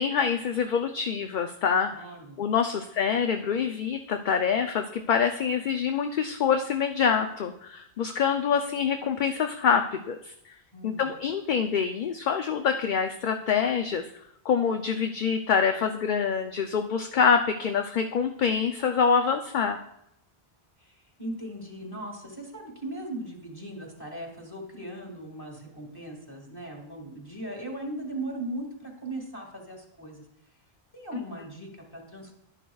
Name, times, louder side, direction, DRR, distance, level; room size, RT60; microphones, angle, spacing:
voice 1, 0.0-2.1 2.4-10.3 10.8-14.0 14.4-19.8 31.1-31.2, left 6 dB, 55° left, 5 dB, 0.6 m, -26 dB
voice 2, 1.9-2.4 10.7-11.1 20.8-30.2 30.9-32.3, right 1 dB, 20° left, 1 dB, 2.0 m, -38 dB
11.5 x 10.5 x 2.3 m, 0.76 s
omnidirectional pair, 1.1 m